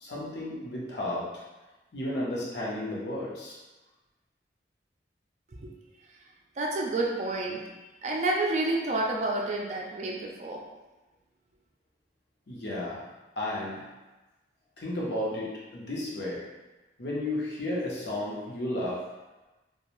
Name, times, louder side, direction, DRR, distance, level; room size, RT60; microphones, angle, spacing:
voice 1, 0.0-1.4 1.9-3.6 12.5-13.0 13.4-13.8 14.8-16.4 17.0-19.0, left 1 dB, 70° left, -6 dB, 0.8 m, -33 dB
voice 2, 6.6-7.6 8.0-10.6, right 2 dB, 40° right, -1 dB, 0.4 m, -29 dB
2.6 x 2.3 x 3.0 m, 1.1 s
head